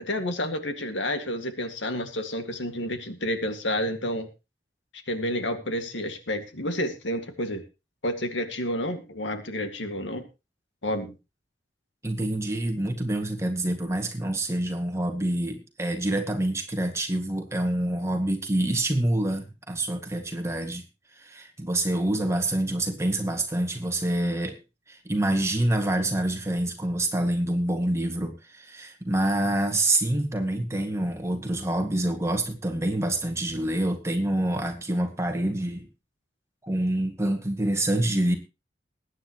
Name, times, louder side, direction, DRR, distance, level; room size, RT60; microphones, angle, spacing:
voice 1, 0.1-4.3 5.1-7.6 8.0-10.3 10.8-11.1, left 1 dB, 80° left, 7 dB, 2.0 m, -30 dB
voice 2, 12.0-20.8 21.1-24.6 24.9-35.9 36.6-38.3, right 1 dB, 15° right, 4 dB, 1.9 m, -26 dB
20.5 x 9.8 x 3.0 m, 0.28 s
head